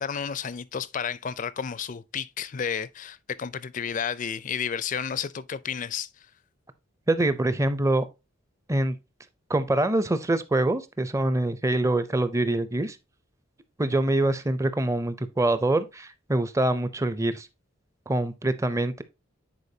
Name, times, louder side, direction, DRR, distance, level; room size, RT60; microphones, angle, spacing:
voice 1, 0.0-6.1, left 7 dB, 40° left, 0.4 m, -31 dB
voice 2, 7.1-8.1 8.7-8.9 9.5-13.0 13.8-17.5 18.1-19.0, right 2 dB, 15° right, 0.5 m, -25 dB
9.8 x 4.4 x 2.7 m
head